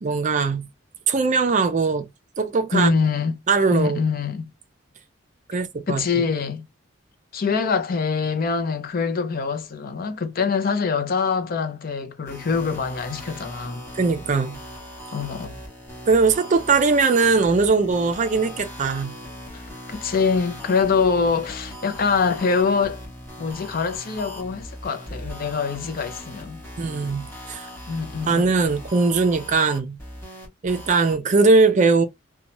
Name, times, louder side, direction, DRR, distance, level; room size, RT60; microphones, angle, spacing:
voice 1, 0.0-0.7 1.1-2.1 2.4-2.9 3.5-4.0 5.5-6.2 13.9-14.6 16.1-19.1 26.8-27.7 28.3-30.0 30.6-32.0, right 4 dB, 40° right, 0.4 m, -20 dB
voice 2, 2.7-3.4 3.7-4.5 5.9-6.6 7.3-13.8 15.1-15.6 19.5-23.0 23.4-26.6 27.9-28.5, left 5 dB, 45° left, 0.5 m, -24 dB
sound 1, 12.3-31.2, equal, 15° left, 1.2 m, -39 dB
2.7 x 2.2 x 2.9 m
head